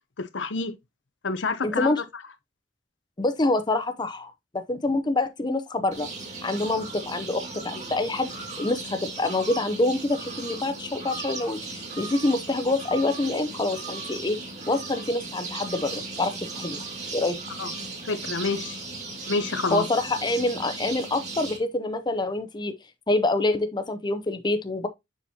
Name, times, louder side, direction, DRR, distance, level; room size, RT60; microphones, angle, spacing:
voice 1, 0.2-0.7 1.2-1.9 17.6-17.7 18.0-18.8 19.3-19.9, left 4 dB, 80° left, 0.8 m, -28 dB
voice 2, 1.6-2.0 3.2-6.1 6.4-8.3 8.6-14.4 14.7-16.8 17.1-17.4 19.7-22.7 23.1-24.9, left 2 dB, 25° left, 0.6 m, -26 dB
sound 1, 5.9-21.6, right 3 dB, 40° right, 2.1 m, -37 dB
7.1 x 5.9 x 2.8 m
head